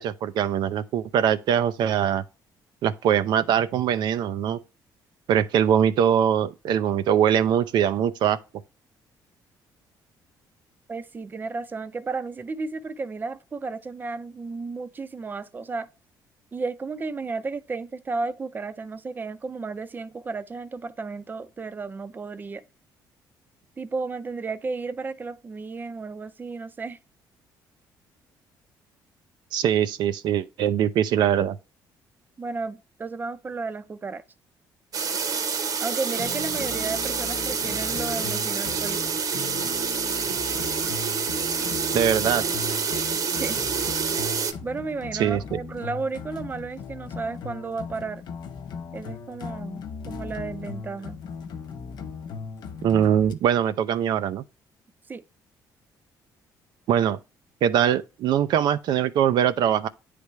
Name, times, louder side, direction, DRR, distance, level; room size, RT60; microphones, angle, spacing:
voice 1, 0.0-2.2 2.8-4.6 5.3-8.4 29.5-31.6 41.9-42.4 45.2-45.4 52.8-54.4 56.9-57.2 57.6-59.9, right 9 dB, 70° right, 0.4 m, -22 dB
voice 2, 10.9-15.9 16.5-22.6 23.8-27.0 32.4-34.2 35.8-39.0 43.3-43.6 44.6-48.2 48.9-51.2 55.1-55.2, right 4 dB, 25° right, 0.5 m, -33 dB
sound 1, 34.9-44.5, right 6 dB, 50° right, 0.9 m, -27 dB
sound 2, 36.1-53.3, left 5 dB, 65° left, 0.7 m, -38 dB
9.3 x 3.3 x 3.1 m
cardioid pair, 100°, 8 cm